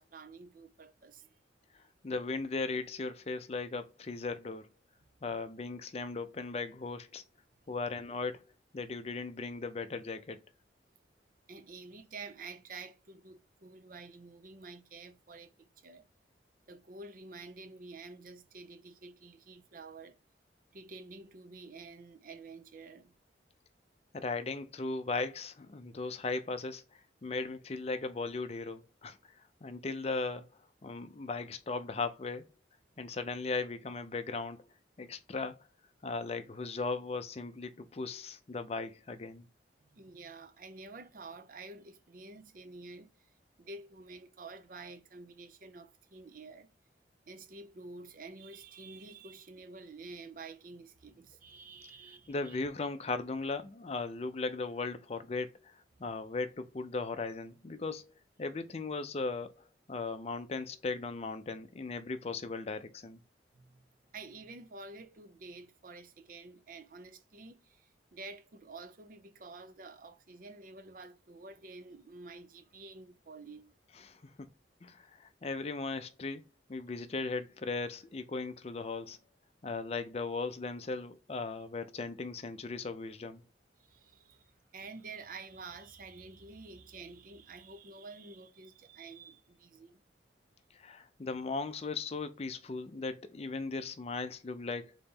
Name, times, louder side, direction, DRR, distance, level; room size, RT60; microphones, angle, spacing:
voice 1, 0.0-1.4 1.8-1.9 7.6-7.7 11.5-16.1 16.7-20.2 20.7-23.1 39.9-43.3 43.6-46.7 47.3-52.6 63.5-63.8 64.1-73.7 83.8-90.0, right 3 dB, 50° right, 0.5 m, -49 dB
voice 2, 2.0-4.7 5.2-7.2 7.7-8.4 8.7-10.4 24.1-29.2 29.6-30.5 30.8-32.5 33.0-34.6 35.0-35.6 36.0-39.5 52.3-58.1 58.4-63.2 74.0-74.5 74.8-76.4 76.7-79.2 79.6-83.4 90.7-95.0, left 3 dB, 35° left, 0.5 m, -37 dB
4.0 x 2.9 x 3.6 m
head